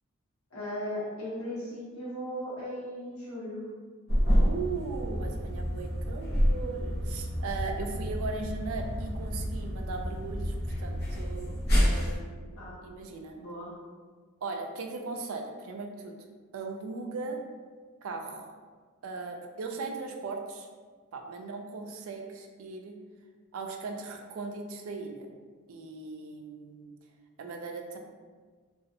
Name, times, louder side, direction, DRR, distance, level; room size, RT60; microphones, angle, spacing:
voice 1, 0.5-3.6 12.6-12.8 13.3-13.7, equal, 80° left, -7 dB, 1.0 m, -37 dB
sound 1, 4.1-12.2, equal, 45° left, 0.8 m, -29 dB
voice 2, 4.3-13.4 14.4-16.2 16.5-17.4 18.0-18.5 19.0-20.7 21.1-23.0 23.5-25.3 25.7-26.9 27.4-28.0, right 4 dB, 70° right, 3 dB, 0.3 m, -38 dB
2.4 x 2.4 x 2.6 m, 1.5 s
head